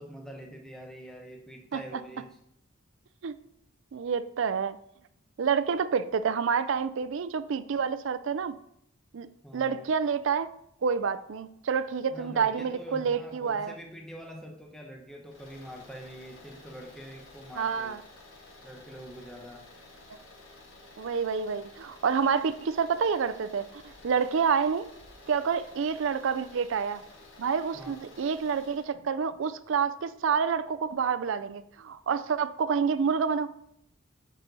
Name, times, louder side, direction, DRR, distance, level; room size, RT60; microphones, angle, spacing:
voice 1, 0.0-2.4 9.4-9.9 12.1-18.0 18.6-19.7 27.7-28.0, equal, ahead, 1 dB, 0.7 m, -45 dB
voice 2, 3.9-4.8 5.4-8.5 9.1-9.3 9.5-10.5 10.8-13.7 17.6-18.0 21.0-23.7 24.0-24.9 25.3-27.0 27.4-33.5, right 6 dB, 65° right, 13 dB, 0.4 m, -28 dB
sound 1, 15.3-28.9, left 2 dB, 65° left, 1.5 m, -52 dB
8.1 x 4.3 x 4.0 m, 0.75 s
head